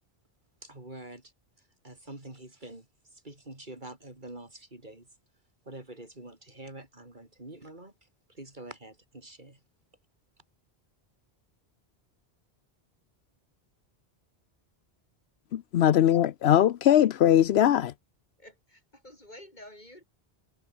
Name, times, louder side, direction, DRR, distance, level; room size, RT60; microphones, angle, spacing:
voice 1, 0.6-1.2 1.8-2.9 3.2-5.1 5.7-7.9 8.3-9.6, right 2 dB, 50° right, 4.0 m, -45 dB
voice 2, 15.5-17.9, left 11 dB, 80° left, 0.9 m, -21 dB
voice 3, 18.4-20.0, left 1 dB, 45° left, 7.5 m, -50 dB
omnidirectional pair, 1.1 m